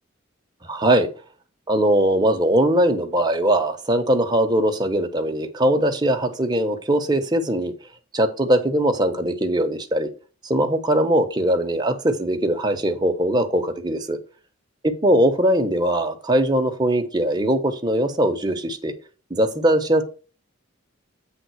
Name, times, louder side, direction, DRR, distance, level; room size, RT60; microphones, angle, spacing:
voice 1, 0.6-1.1 1.7-7.7 8.1-10.1 10.4-14.2 14.8-18.9 19.3-20.0, right 1 dB, 20° right, 4 dB, 1.0 m, -21 dB
8.3 x 3.7 x 6.3 m, 0.36 s
head